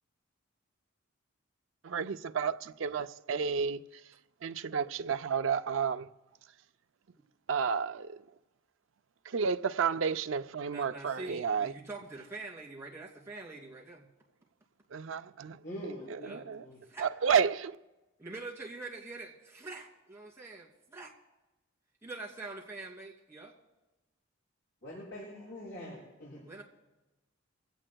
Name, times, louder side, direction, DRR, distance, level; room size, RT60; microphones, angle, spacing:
voice 1, 1.8-3.8 4.4-6.1 7.5-8.2 9.3-11.7 14.9-15.6 15.8-16.6 17.0-17.8, right 6 dB, 70° right, 0.5 m, -31 dB
voice 2, 10.7-14.1 16.2-16.4 16.8-17.1 18.2-21.1 22.0-23.5 26.4-26.6, right 3 dB, 15° right, 2.7 m, -44 dB
voice 3, 15.6-16.8 24.8-26.4, equal, 65° left, 6.7 m, -44 dB
24.5 x 16.5 x 2.3 m
head